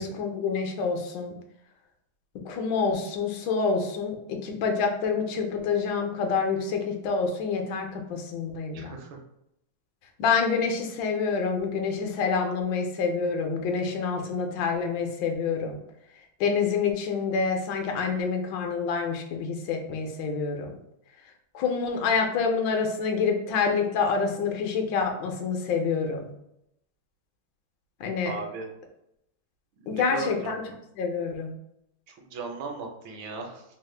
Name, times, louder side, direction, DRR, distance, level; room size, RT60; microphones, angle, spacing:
voice 1, 0.0-1.4 2.4-4.2 4.4-9.0 10.2-15.8 16.4-20.8 21.5-26.2 28.0-28.3 29.9-30.6 31.0-31.5, left 5 dB, 70° left, 3 dB, 1.2 m, -27 dB
voice 2, 8.7-9.2 28.2-28.7 29.8-30.8 32.1-33.6, right 3 dB, 75° right, 3 dB, 1.4 m, -37 dB
3.6 x 2.1 x 3.2 m, 0.79 s
omnidirectional pair, 2.3 m